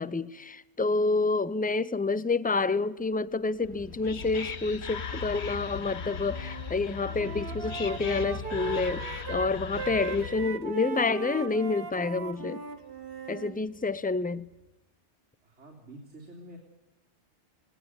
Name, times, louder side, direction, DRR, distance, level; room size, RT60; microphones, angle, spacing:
voice 1, 0.0-12.6 13.3-14.5, left 3 dB, 10° left, 0.4 m, -28 dB
sound 1, 3.0-14.7, equal, 55° left, 4.3 m, -59 dB
Whispering, 3.6-10.6, left 6 dB, 70° left, 1.5 m, -38 dB
Wind instrument woodwind instrument, 6.3-6.7 7.0-13.6, right 6 dB, 55° right, 1.5 m, -39 dB
voice 2, 15.4-16.6, right 1 dB, 90° right, 3.8 m, -48 dB
19.5 x 18.5 x 8.0 m
omnidirectional pair, 1.2 m